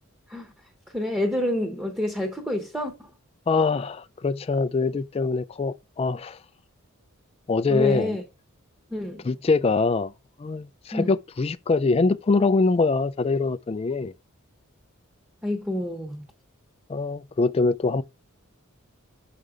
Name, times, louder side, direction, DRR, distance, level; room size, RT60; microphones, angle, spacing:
voice 1, 0.9-3.1 7.7-8.2 8.9-9.3 10.9-11.1 15.4-16.2, left 1 dB, 5° right, 0.9 m, -28 dB
voice 2, 3.5-6.4 7.5-8.2 9.2-10.1 10.4-14.1 16.9-18.0, left 3 dB, 25° left, 0.3 m, -23 dB
6.7 x 5.0 x 4.8 m
head